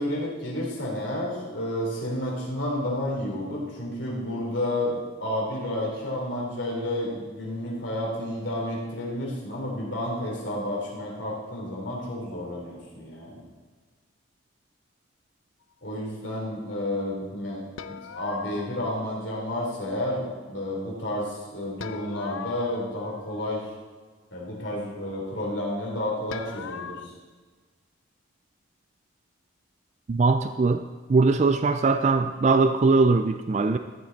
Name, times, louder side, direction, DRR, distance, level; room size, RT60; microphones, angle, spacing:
voice 1, 0.0-13.4 15.8-23.7 24.3-27.1, left 1 dB, 65° left, -3 dB, 3.5 m, -31 dB
sound 1, 17.8-19.1 21.8-23.7 26.3-27.1, left 7 dB, 85° left, 0.5 m, -40 dB
voice 2, 30.1-30.8 31.1-33.8, right 3 dB, 35° right, 9 dB, 0.3 m, -21 dB
13.5 x 7.6 x 4.1 m, 1.4 s
head